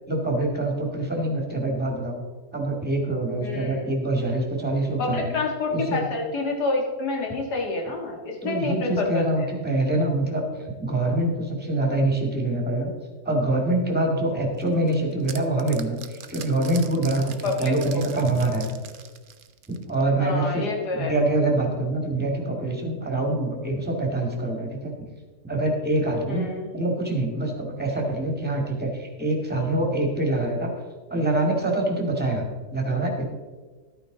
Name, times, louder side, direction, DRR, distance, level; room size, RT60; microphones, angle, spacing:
voice 1, 0.1-2.2 2.5-5.3 5.7-6.0 8.4-12.9 13.3-18.7 19.7-20.6 20.9-24.9 25.4-26.4 26.7-30.7 31.1-33.2, right 2 dB, 5° right, 1 dB, 1.9 m, -25 dB
voice 2, 3.4-3.9 5.0-9.5 17.4-18.0 20.2-21.1 26.3-26.7, left 3 dB, 80° left, 1 dB, 2.3 m, -28 dB
sound 1, 14.6-20.1, right 7 dB, 60° right, 0.5 m, -42 dB
12.0 x 9.3 x 3.9 m, 1.4 s
omnidirectional pair, 1.7 m